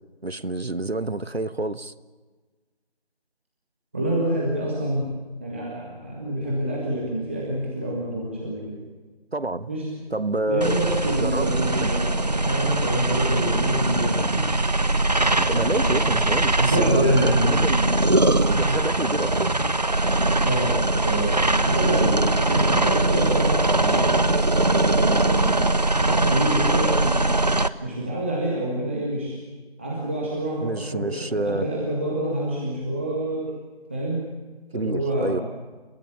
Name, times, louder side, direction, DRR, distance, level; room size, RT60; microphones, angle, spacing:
voice 1, 0.2-1.9 9.3-9.7 10.1-10.7 11.2-11.5 11.8-11.9 15.3-17.8 18.5-19.5 25.7-25.8 30.6-31.7 34.7-35.4, right 2 dB, 85° right, 13 dB, 1.4 m, -28 dB
voice 2, 3.9-5.1 5.4-8.8 9.7-10.2 10.5-14.5 15.5-16.1 16.6-17.9 20.4-25.7 26.0-27.2 27.8-29.4 29.8-33.5 33.9-34.2 34.7-35.4, right 1 dB, 10° right, -4 dB, 1.8 m, -27 dB
sound 1, 10.6-27.7, right 2 dB, 40° right, 0.8 m, -21 dB
29.5 x 15.0 x 8.6 m, 1.4 s
figure-of-eight pair, 170°, 31 cm